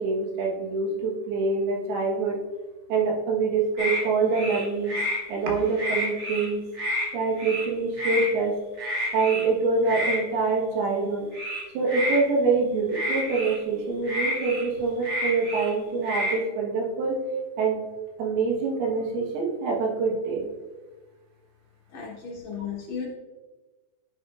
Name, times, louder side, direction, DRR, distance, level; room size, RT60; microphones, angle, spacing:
voice 1, 0.0-2.4 2.9-5.0 5.3-6.6 7.1-8.6 9.1-11.3 11.7-17.2 17.6-17.8 18.2-20.4, right 4 dB, 90° right, -1 dB, 3.3 m, -25 dB
tree frog duett, 3.8-4.0 4.3-5.2 5.6-6.5 6.7-7.1 7.4-7.7 8.0-8.3 8.8-9.4 9.8-10.2 11.3-12.2 12.9-13.5 14.0-15.7 16.0-16.4, equal, 30° right, 1.5 m, -29 dB
voice 2, 21.9-23.1, left 6 dB, 70° left, -4 dB, 1.7 m, -35 dB
10.0 x 5.9 x 2.4 m, 1.2 s
omnidirectional pair, 4.4 m